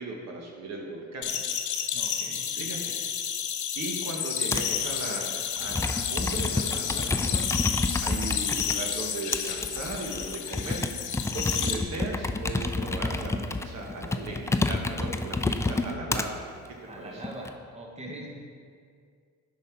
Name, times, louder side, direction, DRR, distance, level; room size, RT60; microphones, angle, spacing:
voice 1, 0.0-1.3 1.7-2.2 2.5-2.9 3.7-17.2, right 2 dB, 60° right, 0 dB, 1.4 m, -37 dB
sound 1, 1.2-11.8, left 8 dB, 75° left, 0.7 m, -31 dB
voice 2, 1.9-2.4 16.8-18.3, right 1 dB, 20° right, -1 dB, 1.2 m, -42 dB
Computer keyboard, 4.5-4.8 5.6-8.8 9.3-16.3 16.9-17.5, left 2 dB, 10° left, 0.3 m, -29 dB
7.9 x 5.6 x 4.6 m, 2.1 s
cardioid pair, 90°, 30 cm